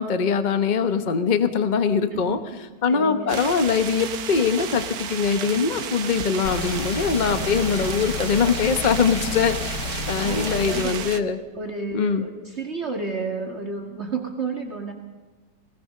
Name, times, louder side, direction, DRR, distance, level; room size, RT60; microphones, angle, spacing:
voice 1, 0.0-2.4 2.8-11.4 11.9-12.3, left 6 dB, 30° left, 9 dB, 1.1 m, -22 dB
voice 2, 2.1-3.3 10.1-11.0 11.5-14.9, right 3 dB, 40° right, 2 dB, 2.4 m, -31 dB
sound 1, 3.3-11.2, right 7 dB, 60° right, 1.5 m, -33 dB
sound 2, 6.4-10.8, left 2 dB, 70° left, 2.3 m, -31 dB
21.0 x 19.0 x 6.6 m, 1.3 s
omnidirectional pair, 1.9 m